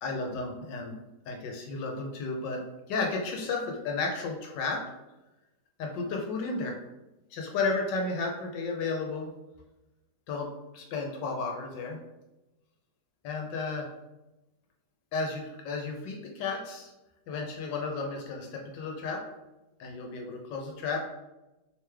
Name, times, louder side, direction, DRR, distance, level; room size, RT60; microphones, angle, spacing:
voice 1, 0.0-1.0 1.3-2.6 2.9-4.8 5.8-6.8 7.3-9.3 10.3-12.0 13.2-13.9 15.1-16.9 17.3-19.2 19.8-21.1, left 3 dB, 75° left, 1 dB, 1.3 m, -33 dB
3.3 x 3.2 x 3.3 m, 1.0 s
omnidirectional pair, 2.0 m